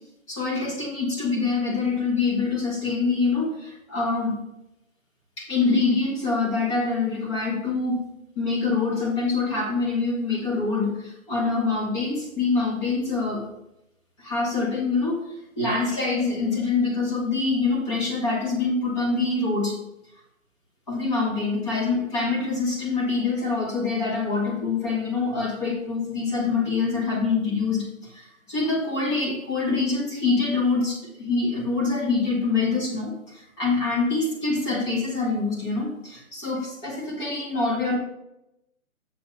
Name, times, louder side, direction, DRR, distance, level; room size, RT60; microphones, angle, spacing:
voice 1, 0.3-4.4 5.4-8.1 8.3-13.5 14.2-15.2 15.5-19.8 20.9-38.0, left 4 dB, 20° left, -2 dB, 1.7 m, -25 dB
6.9 x 6.3 x 4.1 m, 0.86 s
hypercardioid pair, 160°, 41 cm